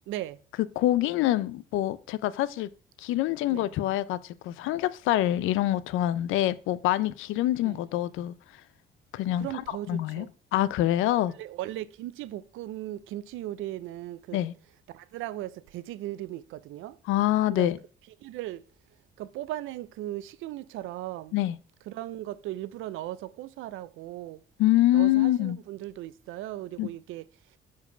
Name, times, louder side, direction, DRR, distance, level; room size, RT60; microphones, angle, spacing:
voice 1, 0.1-0.4 3.5-3.7 7.6-7.8 9.4-10.3 11.3-14.4 14.9-17.0 17.5-17.7 18.2-18.6 19.2-21.3 21.9-24.4 24.9-27.3, right 14 dB, 90° right, 0.4 m, -37 dB
voice 2, 0.8-2.7 3.0-8.3 9.1-9.5 9.9-10.3 10.5-11.3 14.3-14.5 17.1-17.8 21.3-21.5 24.6-25.6 26.8-26.9, left 14 dB, 90° left, 0.4 m, -25 dB
4.7 x 4.6 x 5.3 m
cardioid pair, 90°, 20 cm